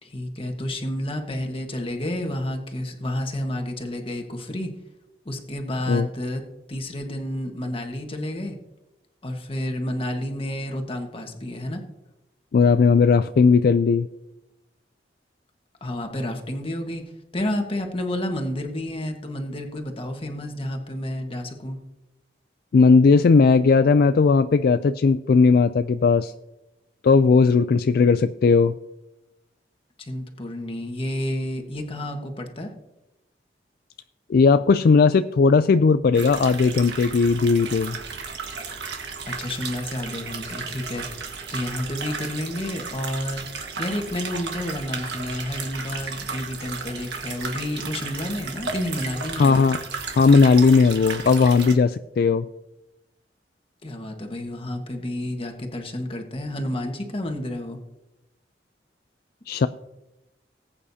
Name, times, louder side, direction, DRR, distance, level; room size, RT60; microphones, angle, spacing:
voice 1, 0.0-4.7 5.2-6.4 6.7-8.5 9.2-11.8 15.8-17.0 17.3-21.8 30.0-32.7 39.3-41.2 41.5-43.4 43.8-49.7 53.8-57.8, left 1 dB, 30° left, 3 dB, 1.5 m, -30 dB
voice 2, 12.5-14.1 22.7-26.3 27.0-28.7 34.3-38.0 49.4-49.8 50.1-52.5 59.5-59.7, left 4 dB, 55° left, 11 dB, 0.3 m, -17 dB
sound 1, 36.1-51.7, right 5 dB, 70° right, 1.6 m, -34 dB
19.5 x 8.7 x 2.8 m, 0.95 s
head